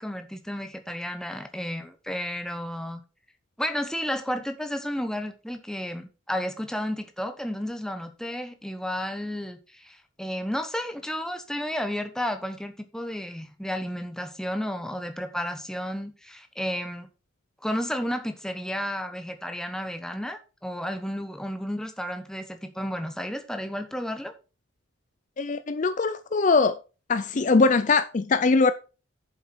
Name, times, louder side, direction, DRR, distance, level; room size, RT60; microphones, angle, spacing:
voice 1, 0.0-3.0 3.6-17.1 17.6-24.3, equal, 5° left, 1.0 m, -32 dB
voice 2, 25.4-26.8 27.1-28.7, left 4 dB, 35° left, 0.4 m, -21 dB
8.1 x 7.4 x 4.5 m
head